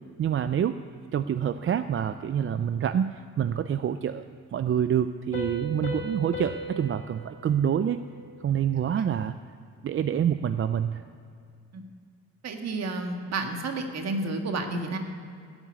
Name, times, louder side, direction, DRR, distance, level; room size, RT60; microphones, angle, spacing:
voice 1, 0.2-0.8 1.1-4.2 4.5-8.0 8.4-9.3 9.8-11.0, right 9 dB, 45° right, 11 dB, 0.5 m, -27 dB
Piano, 5.3-8.7, left 2 dB, 25° left, 4.1 m, -38 dB
voice 2, 12.4-15.0, right 2 dB, 60° right, 4 dB, 1.8 m, -31 dB
13.5 x 7.1 x 9.5 m, 2.3 s
cardioid pair, 90°, 30 cm